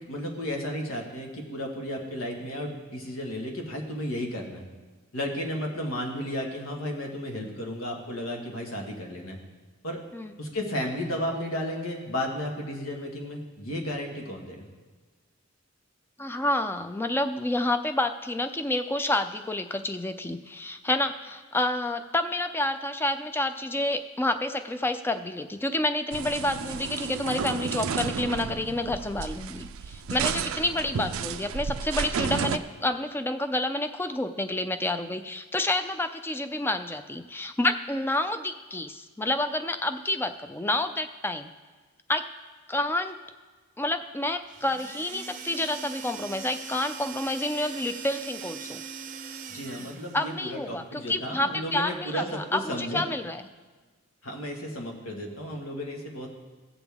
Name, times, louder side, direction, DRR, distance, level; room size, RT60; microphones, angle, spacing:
voice 1, 0.1-4.6 5.1-9.4 9.8-10.0 10.4-14.7 49.5-53.0 54.2-56.3, equal, 85° left, 1 dB, 1.6 m, -33 dB
voice 2, 16.2-41.5 42.1-42.3 42.7-43.2 43.8-48.8 50.1-53.4, left 1 dB, 10° left, 9 dB, 0.4 m, -29 dB
sound 1, 26.1-32.6, right 6 dB, 85° right, 0.4 m, -32 dB
sound 2, 44.5-50.3, right 6 dB, 40° right, 0.6 m, -41 dB
16.0 x 7.1 x 3.5 m, 1.3 s
head